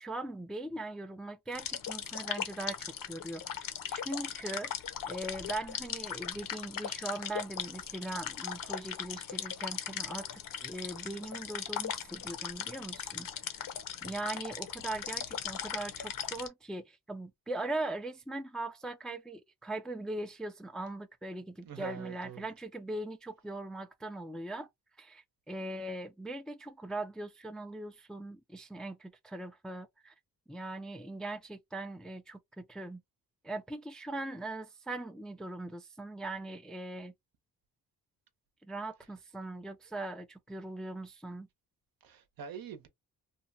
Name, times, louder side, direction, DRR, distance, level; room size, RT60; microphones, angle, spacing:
voice 1, 0.0-4.7 5.0-13.7 14.0-24.7 25.0-30.1 30.5-33.0 33.4-37.1 38.6-41.5, right 2 dB, ahead, 0.4 m, -40 dB
sound 1, 1.5-16.5, left 8 dB, 60° left, 0.7 m, -39 dB
voice 2, 21.6-22.4 42.0-42.9, right 8 dB, 65° right, 0.8 m, -44 dB
2.8 x 2.2 x 2.6 m
cardioid pair, 80°, 38 cm